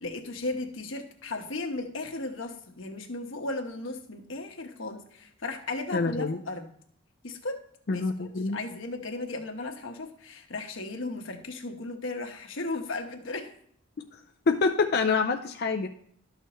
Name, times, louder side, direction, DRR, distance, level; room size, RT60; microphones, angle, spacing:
voice 1, 0.0-6.7 7.2-7.6 7.9-13.5, left 2 dB, 70° left, 4 dB, 1.2 m, -36 dB
voice 2, 5.9-6.4 7.9-8.6 14.5-15.9, left 4 dB, 50° left, 4 dB, 0.5 m, -26 dB
12.0 x 6.4 x 3.1 m, 0.64 s
head